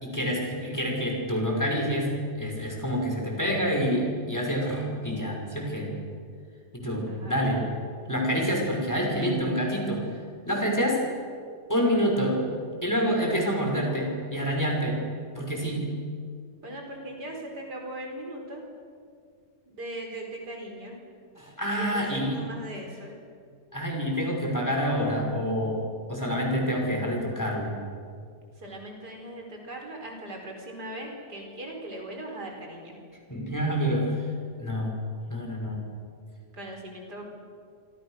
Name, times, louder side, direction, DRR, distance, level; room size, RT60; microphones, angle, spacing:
voice 1, 0.0-5.9 6.7-7.6 8.1-10.1 10.5-11.0 11.7-12.4 12.8-15.0 15.4-16.0 21.4-22.4 23.7-27.7 33.3-34.1 34.6-35.0 35.3-35.8, equal, 10° left, 0 dB, 5.5 m, -27 dB
voice 2, 7.1-7.7 16.6-18.6 19.7-21.0 21.7-23.1 28.6-33.0 36.5-37.4, right 1 dB, 85° right, 1 dB, 5.3 m, -39 dB
27.0 x 26.0 x 6.5 m, 2.2 s
omnidirectional pair, 1.7 m